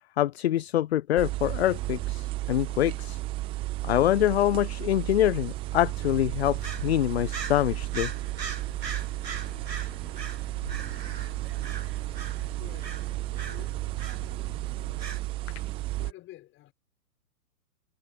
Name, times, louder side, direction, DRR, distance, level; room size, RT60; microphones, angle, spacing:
voice 1, 0.2-3.2 3.8-8.1, left 13 dB, 40° left, 0.7 m, -25 dB
sound 1, 1.2-16.1, right 18 dB, 10° right, 0.6 m, -33 dB
sound 2, 6.5-15.2, right 5 dB, 90° right, 1.3 m, -40 dB
voice 2, 12.6-13.0 13.4-14.1 16.0-16.7, left 16 dB, 25° left, 6.0 m, -49 dB
figure-of-eight pair, 120°, 48 cm